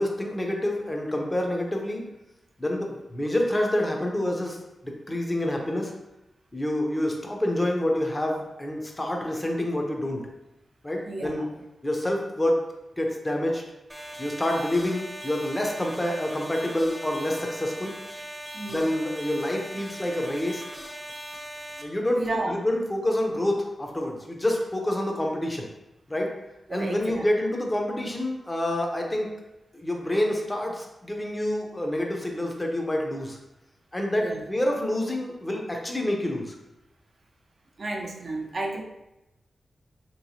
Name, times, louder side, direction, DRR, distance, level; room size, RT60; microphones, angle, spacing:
voice 1, 0.0-2.1 2.6-4.6 4.8-5.9 6.5-10.3 10.8-11.5 11.8-12.7 13.0-13.6 14.2-17.9 18.7-20.6 21.8-25.7 26.1-26.3 26.7-29.3 29.7-33.4 33.9-36.6, left 1 dB, 20° left, 1 dB, 0.7 m, -27 dB
voice 2, 11.1-11.5 14.5-14.6 18.5-18.9 22.1-22.5 26.7-27.2 34.2-34.4 37.8-38.8, right 2 dB, 60° right, 0 dB, 0.6 m, -32 dB
sound 1, 13.9-21.8, right 1 dB, 10° right, 0.7 m, -40 dB
3.1 x 3.0 x 2.8 m, 0.94 s
cardioid pair, 60°, 0 cm